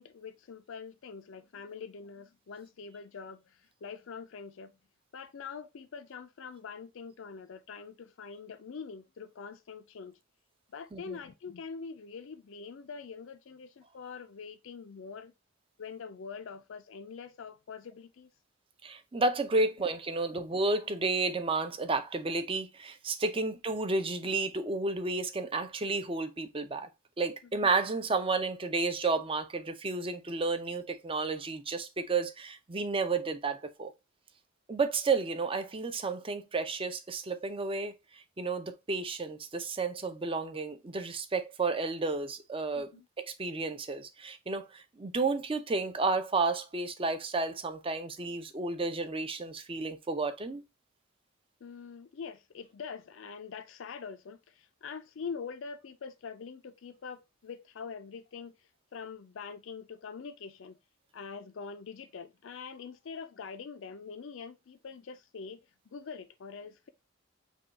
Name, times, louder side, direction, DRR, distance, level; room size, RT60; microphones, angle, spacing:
voice 1, 0.0-4.7 5.1-10.2 10.7-15.3 15.8-18.3 42.8-43.1 51.6-58.5 58.9-60.8 61.1-65.6 65.9-66.9, left 5 dB, 60° left, 0.4 m, -44 dB
voice 2, 18.8-26.9 27.2-33.9 34.7-42.9 43.2-50.6, right 3 dB, 25° right, 0.5 m, -32 dB
5.4 x 2.3 x 4.0 m
head